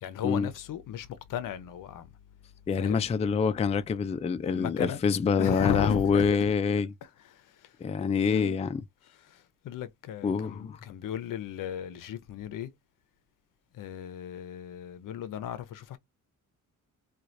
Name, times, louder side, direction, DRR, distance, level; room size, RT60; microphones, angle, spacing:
voice 1, 0.0-2.2 2.7-3.1 4.5-5.0 5.4-6.4 7.0-7.9 8.3-8.6 9.1-12.7 13.7-16.0, left 10 dB, 85° left, 0.7 m, -36 dB
voice 2, 2.7-6.9 7.8-8.8 10.2-10.8, left 5 dB, 20° left, 0.3 m, -26 dB
4.5 x 2.4 x 2.5 m
cardioid pair, 120°, 32 cm